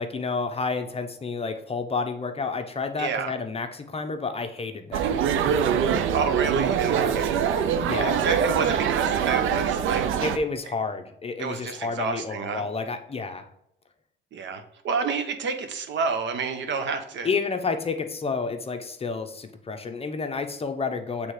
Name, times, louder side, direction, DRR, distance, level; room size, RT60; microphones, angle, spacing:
voice 1, 0.0-5.2 7.8-8.2 10.2-13.5 17.2-21.3, left 4 dB, 30° left, 7 dB, 0.7 m, -30 dB
voice 2, 3.0-3.3 6.1-7.3 8.0-10.1 11.4-12.6 14.3-17.3, right 5 dB, 65° right, 7 dB, 0.9 m, -29 dB
sound 1, 4.9-10.4, right 8 dB, 85° right, 0.6 m, -24 dB
6.2 x 3.5 x 4.8 m, 0.75 s
cardioid pair, 90°, 20 cm